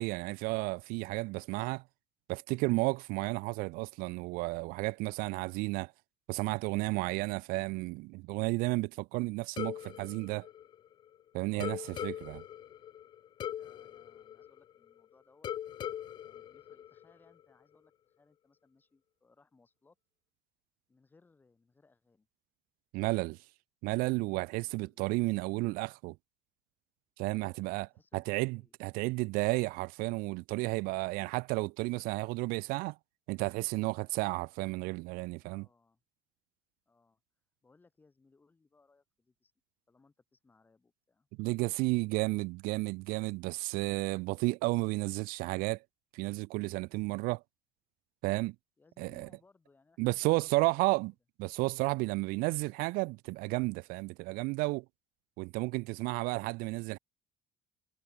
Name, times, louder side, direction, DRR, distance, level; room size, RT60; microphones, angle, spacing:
voice 1, 0.0-1.8 2.3-5.9 6.3-10.5 11.3-12.4 22.9-23.4 23.8-26.2 27.2-27.9 28.1-33.0 33.3-35.7 41.4-45.8 46.1-47.4 48.2-48.5 49.0-49.3 50.0-51.1 51.4-54.8 55.4-57.0, right 24 dB, 85° right, 0.5 m, -32 dB
sound 1, 9.6-11.2 11.6-15.0 15.4-17.4, left 10 dB, 30° left, 0.5 m, -41 dB
voice 2, 11.3-12.5 13.5-15.5 16.2-20.0 20.9-22.3 24.6-25.0 27.3-28.7 35.4-36.0 36.9-37.2 37.6-39.5 39.9-41.3 48.8-51.0, left 3 dB, 15° left, 3.9 m, -66 dB
cardioid pair, 180°, 14 cm